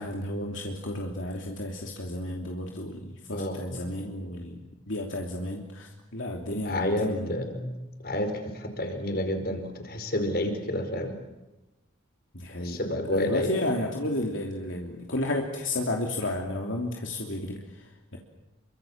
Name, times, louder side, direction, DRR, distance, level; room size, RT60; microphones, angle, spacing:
voice 1, 0.0-4.6 4.9-7.3 12.3-12.8 13.0-18.2, left 1 dB, 65° left, 0 dB, 3.1 m, -32 dB
voice 2, 3.3-3.8 6.6-7.8 8.0-11.2 12.6-13.5, left 1 dB, 50° left, 6 dB, 5.0 m, -30 dB
28.5 x 24.5 x 7.4 m, 1.0 s
head